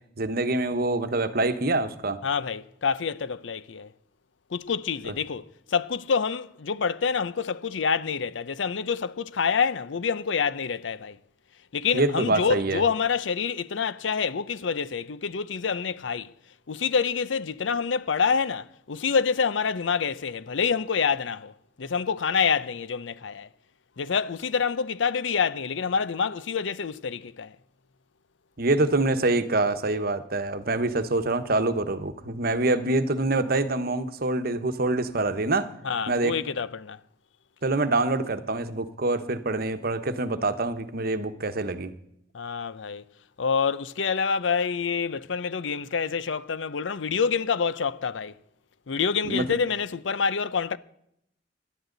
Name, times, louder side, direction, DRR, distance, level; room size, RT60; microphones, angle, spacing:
voice 1, 0.2-2.2 11.9-12.8 28.6-35.7 36.1-36.3 37.6-41.9 49.2-49.4, right 2 dB, 55° right, 1.1 m, -25 dB
voice 2, 2.2-3.9 4.5-11.2 11.7-16.3 16.7-23.5 24.0-27.6 35.8-37.0 42.3-43.1 43.4-48.3 48.9-50.8, left 6 dB, 85° left, 0.6 m, -27 dB
18.5 x 12.0 x 3.9 m
head